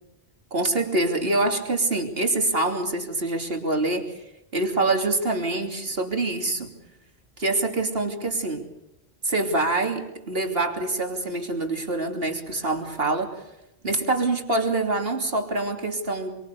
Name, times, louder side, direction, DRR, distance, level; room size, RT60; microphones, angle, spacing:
voice 1, 0.5-4.1 4.5-6.7 7.4-8.6 9.2-13.4 13.8-16.4, right 2 dB, 60° right, 4 dB, 3.4 m, -25 dB
27.0 x 24.5 x 6.9 m, 0.91 s
omnidirectional pair, 1.1 m